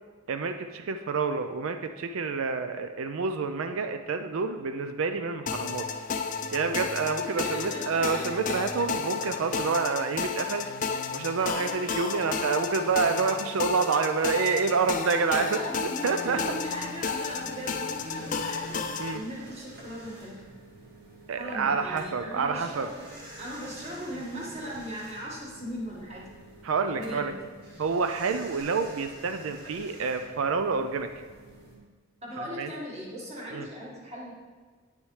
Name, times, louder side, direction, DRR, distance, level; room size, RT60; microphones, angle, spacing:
voice 1, 0.3-5.9 6.5-10.6 11.1-15.6 16.0-16.4 19.0-19.2 21.3-22.9 26.6-27.3 27.8-31.1 32.6-32.7 33.5-33.7, right 5 dB, 85° right, 7 dB, 0.4 m, -28 dB
sound 1, 5.5-19.2, left 5 dB, 40° left, 0.4 m, -32 dB
voice 2, 7.4-8.2 15.4-18.7 19.1-20.4 21.4-23.0 23.4-26.3 27.0-27.4 32.2-34.3, equal, 30° right, -4 dB, 1.8 m, -38 dB
sound 2, 16.1-31.8, right 1 dB, 55° right, 2.0 m, -48 dB
9.0 x 6.3 x 3.2 m, 1.5 s
head